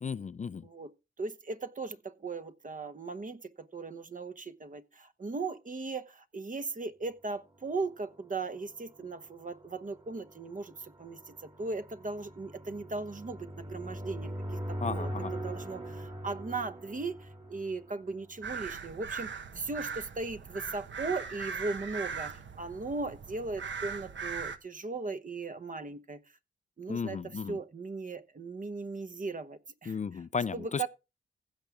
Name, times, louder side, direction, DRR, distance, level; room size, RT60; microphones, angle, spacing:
voice 1, 0.0-0.6 14.8-15.3 26.9-27.6 29.9-30.9, left 6 dB, 35° left, 0.4 m, -34 dB
voice 2, 1.2-14.3 14.7-26.2 26.8-30.2 30.5-30.9, right 3 dB, 40° right, 1.0 m, -38 dB
sound 1, 8.0-18.8, right 1 dB, 25° right, 2.0 m, -42 dB
sound 2, 18.4-24.6, right 5 dB, 65° right, 1.1 m, -39 dB
16.0 x 5.9 x 3.7 m
cardioid pair, 55°, 20 cm